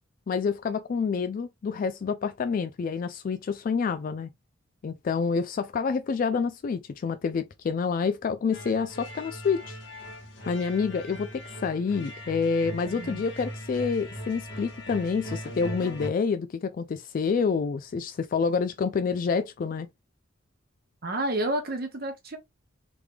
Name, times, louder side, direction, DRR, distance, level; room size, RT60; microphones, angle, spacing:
voice 1, 0.3-4.3 4.8-9.8 10.5-19.9, left 5 dB, 45° left, 0.3 m, -28 dB
sound 1, 8.5-16.1, equal, 65° left, 1.4 m, -39 dB
voice 2, 12.8-13.2 21.0-22.4, right 1 dB, 50° right, 1.2 m, -30 dB
3.4 x 3.3 x 2.2 m
head